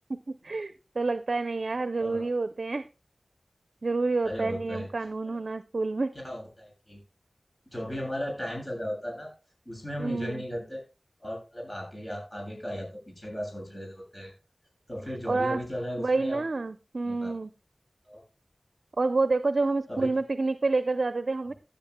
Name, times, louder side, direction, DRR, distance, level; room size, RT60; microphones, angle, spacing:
voice 1, 0.1-2.8 3.8-6.1 10.0-10.4 15.3-15.6 16.0-17.5 19.0-21.5, right 3 dB, 65° right, 11 dB, 0.6 m, -28 dB
voice 2, 4.2-4.9 5.2-5.4 6.1-7.0 7.7-9.3 9.7-10.8 11.2-14.3 14.9-16.5 17.0-17.3 18.1-18.2 19.9-20.1, equal, 20° left, -1 dB, 7.6 m, -36 dB
17.0 x 9.9 x 2.3 m, 0.31 s
wide cardioid pair, 75°, 0 cm